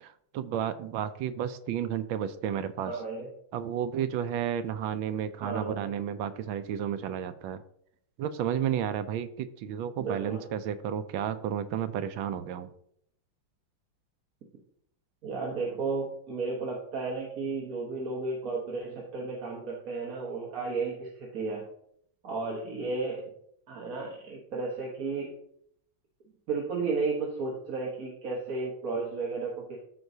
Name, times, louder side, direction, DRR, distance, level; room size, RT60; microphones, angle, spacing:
voice 1, 0.0-2.9 3.5-7.6 8.2-12.7, right 9 dB, 75° right, 11 dB, 1.3 m, -32 dB
voice 2, 2.8-3.3 5.4-5.9 10.0-10.5 15.2-21.6 22.2-23.2 23.7-25.3 26.5-29.8, right 4 dB, 50° right, -2 dB, 1.5 m, -33 dB
14.0 x 4.7 x 2.7 m, 0.69 s
omnidirectional pair, 2.3 m